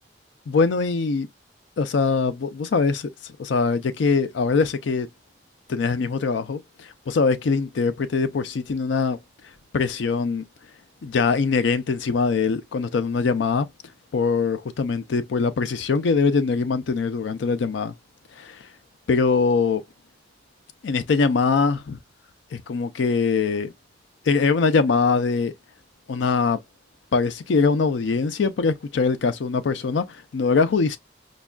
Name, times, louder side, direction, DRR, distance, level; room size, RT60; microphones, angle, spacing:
voice 1, 0.5-1.3 1.8-5.1 5.7-9.2 9.7-10.4 11.0-13.7 14.1-17.9 18.3-18.7 19.1-19.8 20.8-22.0 22.5-23.7 24.2-25.5 26.1-26.6 27.1-31.0, left 4 dB, 80° left, 0.4 m, -22 dB
5.1 x 2.3 x 2.3 m
head